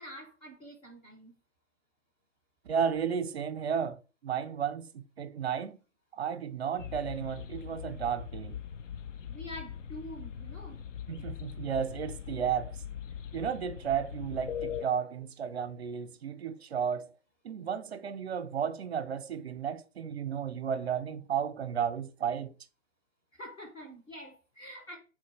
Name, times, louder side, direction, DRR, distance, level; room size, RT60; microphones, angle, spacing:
voice 1, 0.0-1.3 9.3-10.8 23.3-25.0, equal, 10° left, 0.5 m, -46 dB
voice 2, 2.7-5.8 6.1-8.6 11.1-12.8 13.3-17.1 17.4-22.5, right 7 dB, 60° right, 0.5 m, -33 dB
sound 1, 6.8-14.9, left 8 dB, 80° left, 0.5 m, -41 dB
3.6 x 2.3 x 4.4 m
figure-of-eight pair, 130°, 37 cm